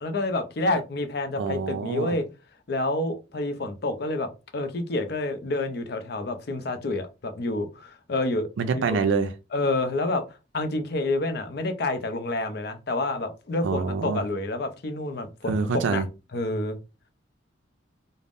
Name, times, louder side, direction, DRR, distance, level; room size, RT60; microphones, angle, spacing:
voice 1, 0.0-2.2 2.7-8.5 8.7-9.0 9.5-10.2 10.5-16.0 16.3-16.8, left 2 dB, 55° left, 0.5 m, -28 dB
voice 2, 1.4-2.2 8.6-9.3 13.6-14.2 15.5-16.0, right 5 dB, 75° right, 0.4 m, -26 dB
3.4 x 2.0 x 2.5 m
head